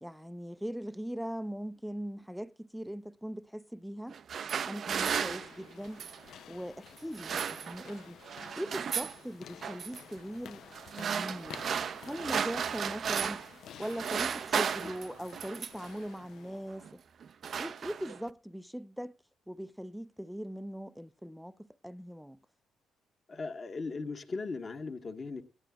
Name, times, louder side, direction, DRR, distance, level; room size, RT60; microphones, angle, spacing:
voice 1, 0.0-4.2 4.7-6.0 6.5-8.2 8.6-10.6 11.0-11.6 12.0-13.4 13.8-17.0 17.6-19.2 19.5-22.4, equal, ahead, 0.5 m, -40 dB
sound 1, 4.1-6.3 7.0-8.0 8.3-9.2 9.6-10.0 10.7-13.5 13.8-15.9 16.7-16.9 17.2-18.3, right 7 dB, 55° right, 0.4 m, -34 dB
sound 2, 5.0-16.9, left 9 dB, 70° left, 0.5 m, -52 dB
voice 2, 23.3-25.4, left 4 dB, 40° left, 1.4 m, -38 dB
17.5 x 11.0 x 2.3 m
cardioid pair, 90°, 0 cm